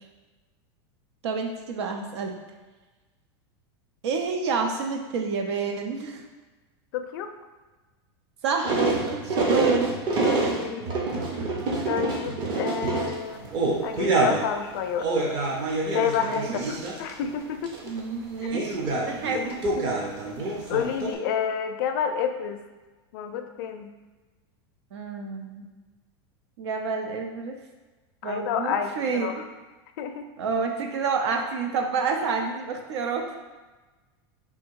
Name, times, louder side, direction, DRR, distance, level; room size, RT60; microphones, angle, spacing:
voice 1, 1.2-2.4 4.0-6.2 8.4-9.9 11.7-12.0 16.2-16.9 17.8-19.6 24.9-25.7 26.6-27.6 28.2-29.4 30.4-33.4, right 5 dB, 85° right, 4 dB, 0.7 m, -29 dB
voice 2, 6.9-7.3 10.2-10.9 11.9-13.5 13.8-15.1 15.9-17.8 19.3-20.0 20.7-22.6 23.1-23.9 28.2-29.4 30.0-30.3, left 8 dB, 55° left, 7 dB, 0.4 m, -29 dB
sound 1, 8.7-14.5 14.8-17.3 17.6-18.0 18.5-21.1, right 3 dB, 30° right, 0.6 m, -26 dB
3.5 x 2.7 x 4.5 m, 1.2 s
supercardioid pair, 165°, 14 cm